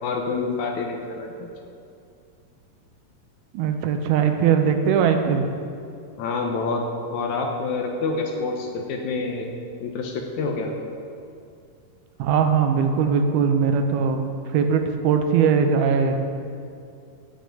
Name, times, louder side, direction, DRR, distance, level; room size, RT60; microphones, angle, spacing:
voice 1, 0.0-1.5 6.2-6.9 7.1-9.5 9.8-10.7, left 4 dB, 75° left, 2 dB, 1.8 m, -27 dB
voice 2, 3.5-5.5 12.2-14.2 14.5-16.2, right 6 dB, 80° right, 5 dB, 2.7 m, -20 dB
10.5 x 6.4 x 8.3 m, 2.5 s
omnidirectional pair, 4.5 m